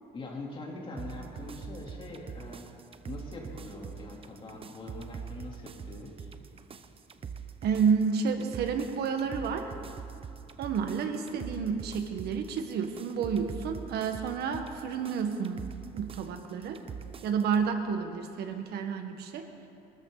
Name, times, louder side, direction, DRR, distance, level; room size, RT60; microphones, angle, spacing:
voice 1, 0.1-2.7 3.0-6.3, left 2 dB, 30° left, -2 dB, 3.4 m, -43 dB
sound 1, 1.0-17.6, right 6 dB, 35° right, 0.8 m, -44 dB
voice 2, 7.6-9.7 10.6-15.7 15.9-16.8 17.2-19.5, right 6 dB, 75° right, 6 dB, 1.5 m, -30 dB
23.0 x 14.0 x 4.1 m, 2.7 s
cardioid pair, 110°, 17 cm